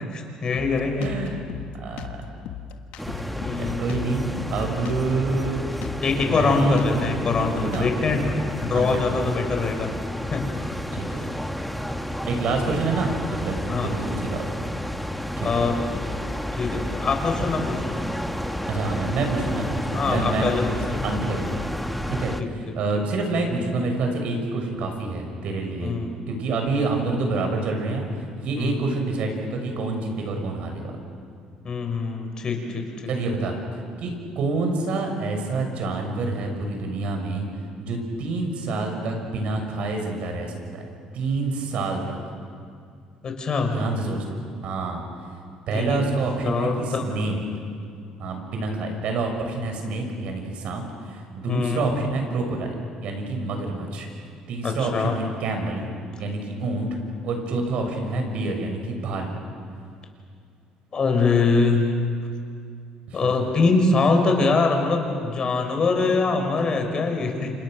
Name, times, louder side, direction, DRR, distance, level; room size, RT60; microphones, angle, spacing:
voice 1, 0.1-1.1 3.3-3.9 6.0-9.9 10.3-10.4 13.7-13.9 15.4-15.8 16.5-18.0 19.9-20.6 20.9-21.0 22.4-22.5 25.8-26.1 28.6-28.8 31.6-32.9 43.2-43.7 45.7-46.1 46.4-47.0 51.5-51.9 54.6-55.1 60.9-61.9 63.1-67.5, left 4 dB, 40° left, 4 dB, 5.6 m, -23 dB
Drum kit, 0.5-8.2, left 9 dB, 85° left, 1.6 m, -37 dB
voice 2, 1.0-1.4 1.8-2.3 3.0-5.8 6.2-6.8 7.3-8.0 8.7-9.1 10.9-11.3 12.2-14.5 15.4-15.6 18.7-20.5 21.0-21.6 22.1-25.9 26.3-28.0 28.4-31.0 33.1-33.5 34.0-37.5 37.8-40.8 41.1-42.2 43.7-45.0 45.7-47.4 48.2-52.8 53.0-54.1 54.5-55.9 56.2-57.0 57.2-59.4 63.1-63.3, right 3 dB, 65° right, 3 dB, 6.3 m, -27 dB
sound 1, 3.0-22.4, equal, ahead, 1.2 m, -31 dB
29.5 x 27.5 x 6.5 m, 2.3 s
cardioid pair, 105°, 2 cm